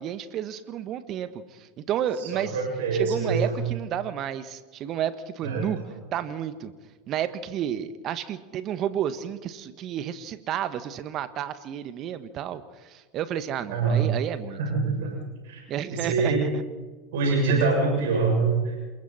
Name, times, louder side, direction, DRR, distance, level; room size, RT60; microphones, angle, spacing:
voice 1, 0.0-2.6 2.9-5.8 6.1-6.7 7.1-14.6 15.7-16.6 17.5-17.6, right 10 dB, 45° right, 11 dB, 1.5 m, -31 dB
voice 2, 2.2-3.6 5.4-5.8 13.7-14.0 14.6-15.1 15.4-15.6 15.9-16.5 17.1-18.8, right 4 dB, 70° right, 0 dB, 6.9 m, -25 dB
28.0 x 22.0 x 4.4 m, 1.3 s
hypercardioid pair, 85°, 0 cm